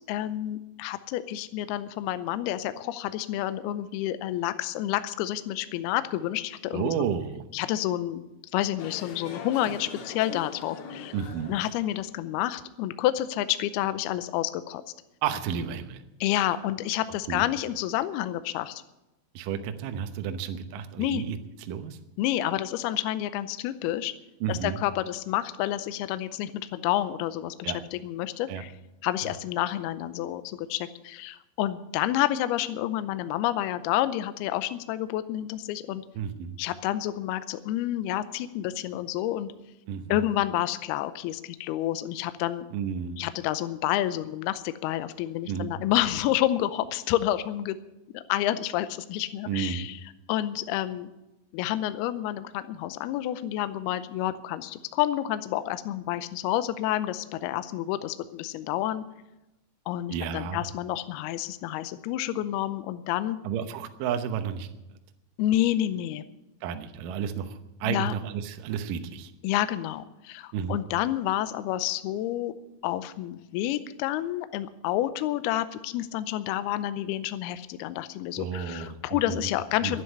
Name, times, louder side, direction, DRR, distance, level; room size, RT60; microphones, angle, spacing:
voice 1, 0.1-6.9 7.5-8.2 8.5-11.1 11.5-14.8 16.2-18.8 21.0-21.2 22.2-24.1 24.5-28.7 29.0-36.0 36.6-39.5 40.1-42.7 43.2-47.8 48.1-50.0 50.3-51.1 51.5-59.1 59.9-63.4 65.4-66.2 67.8-68.1 69.4-72.5 72.8-80.0, left 13 dB, 90° left, 12 dB, 2.3 m, -29 dB
voice 2, 6.7-7.4 11.1-11.6 15.2-16.0 17.3-17.4 19.4-21.4 21.7-22.0 24.4-24.8 27.6-27.8 28.5-28.6 36.2-36.5 39.9-40.2 42.7-43.2 45.5-45.7 49.5-49.9 60.1-60.6 63.4-64.7 66.6-69.3 70.5-70.8 78.4-79.5 79.8-80.0, right 8 dB, 80° right, 8 dB, 1.9 m, -31 dB
sound 1, 8.8-12.1, left 6 dB, 65° left, 2.9 m, -42 dB
11.5 x 9.7 x 9.9 m, 0.95 s
omnidirectional pair, 5.3 m